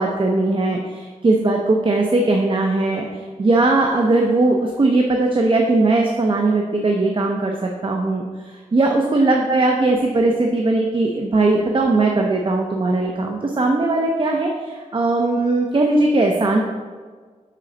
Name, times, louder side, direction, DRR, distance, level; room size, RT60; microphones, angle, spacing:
voice 1, 0.0-16.7, right 2 dB, 40° right, 1 dB, 0.6 m, -19 dB
7.5 x 5.0 x 3.9 m, 1.5 s
wide cardioid pair, 130°, 14 cm